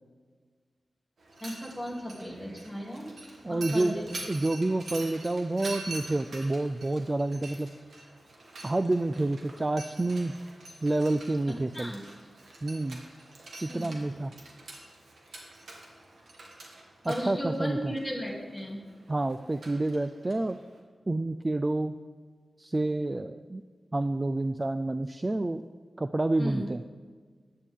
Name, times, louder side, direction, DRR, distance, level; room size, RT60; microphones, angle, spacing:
Mechanisms, 1.2-20.8, right 2 dB, 80° right, 2.0 m, -46 dB
voice 1, 1.4-4.1 11.7-12.0 13.7-13.9 17.1-18.8 26.4-26.7, equal, ahead, -2 dB, 2.6 m, -35 dB
voice 2, 3.4-4.0 4.3-7.7 8.6-10.3 10.8-11.9 12.6-13.0 13.6-14.3 17.0-17.9 19.1-20.6 21.1-22.0 22.6-23.6 23.9-25.6 26.0-26.8, right 2 dB, 25° right, 10 dB, 0.3 m, -28 dB
14.5 x 10.0 x 3.6 m, 1.5 s
wide cardioid pair, 95°, 0 cm